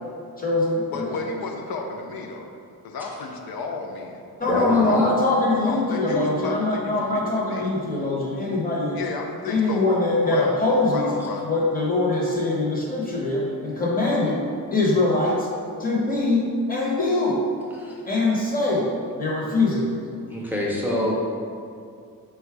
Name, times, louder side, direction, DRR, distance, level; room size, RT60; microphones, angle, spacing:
voice 1, 0.4-1.2 4.4-9.0 9.5-11.1 11.4-14.4 14.7-15.5 15.8-17.4 18.1-20.0, left 2 dB, 25° left, -4 dB, 0.8 m, -23 dB
voice 2, 0.9-2.5 2.8-4.2 4.5-5.1 5.6-7.7 8.9-10.0 10.2-11.5, left 3 dB, 80° left, 2 dB, 0.5 m, -33 dB
voice 3, 4.4-5.1 17.7-18.0 20.3-21.2, left 1 dB, 5° right, -5 dB, 0.6 m, -26 dB
4.0 x 2.3 x 4.6 m, 2.4 s
wide cardioid pair, 125°, 36 cm